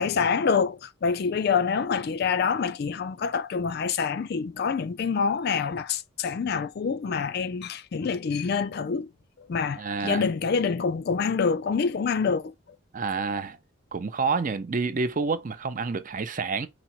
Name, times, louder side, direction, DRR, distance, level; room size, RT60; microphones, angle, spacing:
voice 1, 0.0-9.1 9.4-12.5, left 5 dB, 50° left, 0.3 m, -26 dB
voice 2, 9.8-10.2 12.9-13.6 13.9-16.7, right 4 dB, 40° right, 0.5 m, -28 dB
5.0 x 2.1 x 4.3 m
head